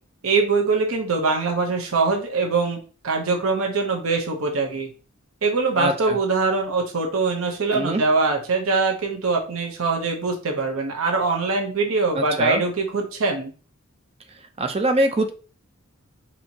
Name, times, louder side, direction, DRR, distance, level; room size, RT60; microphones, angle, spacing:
voice 1, 0.2-2.8 3.0-4.9 5.4-13.5, right 4 dB, 85° right, 2 dB, 0.8 m, -23 dB
voice 2, 5.8-6.2 7.7-8.0 12.1-12.6 14.6-15.3, right 1 dB, 30° right, 6 dB, 0.5 m, -23 dB
4.4 x 2.8 x 2.7 m, 0.37 s
head